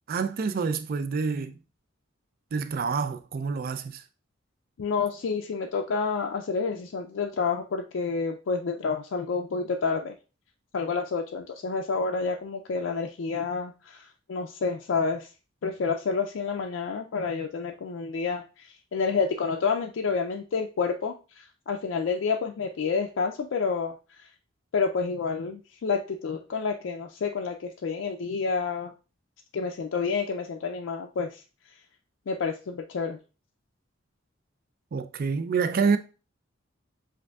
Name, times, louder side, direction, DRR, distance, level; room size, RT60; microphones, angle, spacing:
voice 1, 0.1-1.6 2.5-4.0 34.9-36.0, right 5 dB, 45° right, 0.4 m, -27 dB
voice 2, 4.8-10.1 10.7-15.3 15.6-24.3 24.7-28.9 29.5-31.4 32.3-33.2, left 5 dB, 70° left, 0.4 m, -29 dB
7.4 x 2.6 x 2.3 m
head